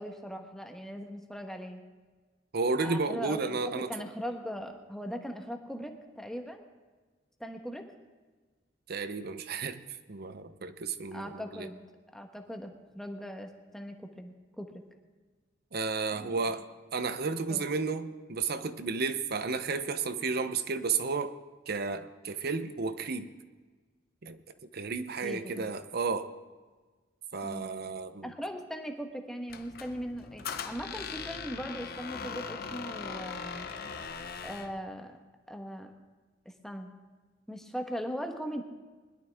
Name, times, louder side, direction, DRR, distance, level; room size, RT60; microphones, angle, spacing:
voice 1, 0.0-1.8 2.8-6.6 7.4-7.8 11.1-11.8 12.1-14.7 16.2-16.4 17.5-17.7 25.2-25.7 27.4-27.7 28.2-33.6 34.4-35.2 35.5-35.9 36.4-36.9 37.5-38.6, equal, ahead, 1.2 m, -39 dB
voice 2, 2.5-3.9 8.9-9.8 10.1-11.7 15.7-16.6 16.9-21.3 21.7-23.3 24.2-24.4 24.7-26.3 27.3-28.3, right 4 dB, 55° right, 0.8 m, -32 dB
Squeak, 29.5-34.8, left 6 dB, 55° left, 0.8 m, -40 dB
21.0 x 12.0 x 3.6 m
head